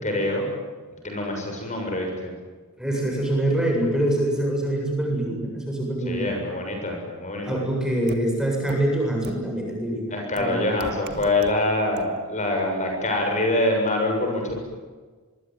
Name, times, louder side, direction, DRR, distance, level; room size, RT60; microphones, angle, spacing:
voice 1, 0.0-0.5 1.0-2.3 6.1-7.6 10.1-14.5, left 1 dB, 35° left, 2 dB, 7.1 m, -25 dB
voice 2, 2.8-6.3 7.4-10.6, right 1 dB, 5° right, 0 dB, 7.6 m, -25 dB
sound 1, 8.1-8.2 8.7-8.8 9.2-9.3 10.4-10.5 10.8-11.5 12.0-12.1, right 3 dB, 50° right, 1.8 m, -37 dB
26.0 x 24.0 x 9.5 m, 1.4 s
head